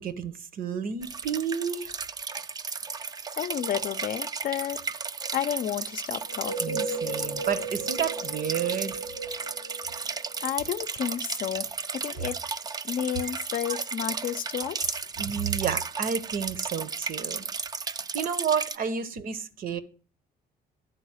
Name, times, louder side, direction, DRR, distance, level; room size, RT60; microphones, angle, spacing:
voice 1, 0.0-1.9 6.6-9.0 13.2-13.3 13.7-13.8 15.2-17.5 18.1-19.8, right 7 dB, 60° right, 0.9 m, -31 dB
sound 1, 1.0-18.8, right 5 dB, 25° right, 0.4 m, -34 dB
voice 2, 3.4-4.8 5.3-6.9 10.4-11.7 12.0-12.4 12.8-15.0, left 10 dB, 55° left, 0.6 m, -31 dB
sound 2, 6.2-10.8, right 2 dB, 80° right, 1.8 m, -35 dB
10.5 x 4.0 x 6.4 m
cardioid pair, 110°, 17 cm